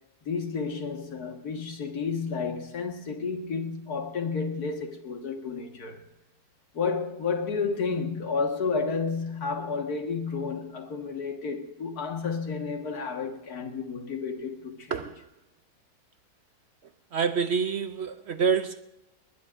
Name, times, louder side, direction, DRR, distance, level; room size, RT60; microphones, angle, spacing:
voice 1, 0.3-6.0 6.7-15.0, left 5 dB, 85° left, 2.1 m, -31 dB
voice 2, 17.1-18.8, right 6 dB, 60° right, 0.7 m, -27 dB
20.5 x 20.0 x 2.5 m
omnidirectional pair, 1.6 m